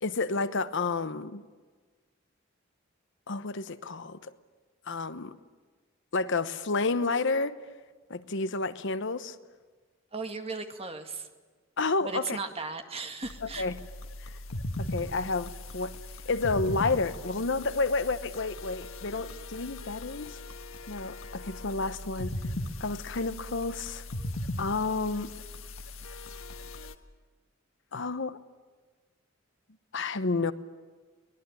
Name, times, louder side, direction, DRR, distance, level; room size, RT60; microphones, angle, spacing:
voice 1, 0.0-1.4 3.3-4.3 4.9-5.3 6.1-7.6 8.1-9.4 11.8-12.4 13.6-13.7 14.2-14.3 14.8-15.9 16.2-20.4 20.9-22.3 22.8-24.0 24.6-25.3 27.9-28.4 29.9-30.5, left 3 dB, 65° left, 1.0 m, -30 dB
voice 2, 10.1-11.3 12.0-13.7, right 4 dB, 30° right, 2.0 m, -36 dB
sound 1, 13.2-27.0, left 1 dB, 85° left, 1.5 m, -39 dB
23.5 x 20.0 x 10.0 m
head